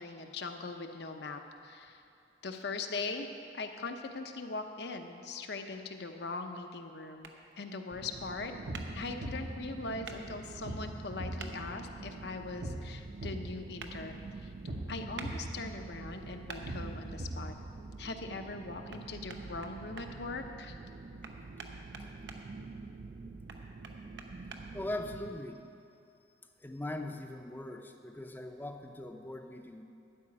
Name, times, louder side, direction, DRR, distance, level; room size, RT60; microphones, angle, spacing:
voice 1, 0.0-2.0 2.4-3.3 3.5-7.3 7.6-8.5 8.9-14.5 14.9-17.5 18.0-20.8, left 3 dB, 65° left, 5 dB, 0.8 m, -41 dB
sound 1, 7.2-7.4 8.7-8.9 10.0-10.2 11.4-11.5 13.8-13.9 15.2-15.3 16.5-16.6 18.9-19.0 19.3-20.1 21.2-22.4 23.5-24.6, right 5 dB, 90° right, 0.9 m, -45 dB
sound 2, 7.9-25.4, right 3 dB, 45° right, 0.4 m, -47 dB
sound 3, 8.2-18.1, right 1 dB, 60° right, 0.9 m, -43 dB
voice 2, 24.7-25.6 26.6-29.8, left 1 dB, 10° left, 5 dB, 0.6 m, -40 dB
12.5 x 5.1 x 8.8 m, 2.6 s
head